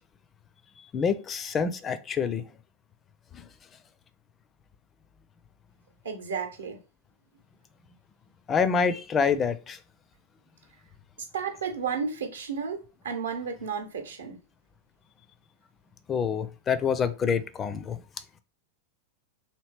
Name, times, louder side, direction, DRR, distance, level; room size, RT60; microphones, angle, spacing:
voice 1, 0.9-2.4 3.3-3.4 8.5-9.8 16.1-18.0, left 6 dB, 25° left, 0.4 m, -26 dB
voice 2, 6.0-6.8 11.3-12.8 13.0-14.4, right 6 dB, 70° right, 0.8 m, -32 dB
3.0 x 2.6 x 3.2 m
figure-of-eight pair, 90°, 0 cm